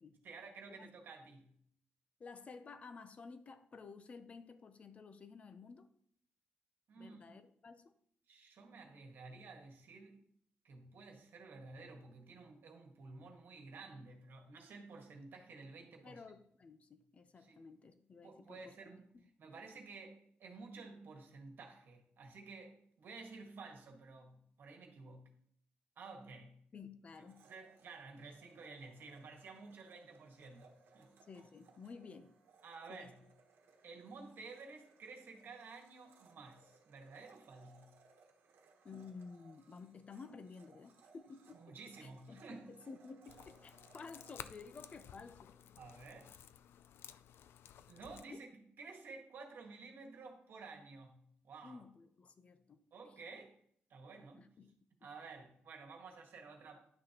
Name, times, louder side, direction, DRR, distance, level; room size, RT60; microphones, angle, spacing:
voice 1, 0.2-1.6 6.9-7.4 8.3-10.2 10.6-16.2 17.4-17.6 18.2-25.3 26.0-26.7 27.2-31.1 32.6-33.2 33.8-38.0 41.5-42.7 45.8-46.4 47.9-51.8 52.9-53.6 53.9-54.5 55.0-56.9, right 4 dB, 65° right, 3 dB, 1.6 m, -53 dB
voice 2, 2.2-5.9 7.0-7.9 16.0-18.7 19.1-19.2 26.7-27.5 31.3-32.4 32.9-33.1 38.8-41.7 42.0-45.6 48.3-48.4 51.6-52.8 54.4-54.7 55.0-55.1, left 4 dB, 35° left, 11 dB, 0.6 m, -53 dB
Domestic sounds home sounds, 27.1-45.9, right 4 dB, 85° right, 1.2 m, -67 dB
sound 1, 43.3-48.3, left 9 dB, 90° left, 0.3 m, -55 dB
10.5 x 6.3 x 3.0 m, 0.65 s
wide cardioid pair, 155°, 4 cm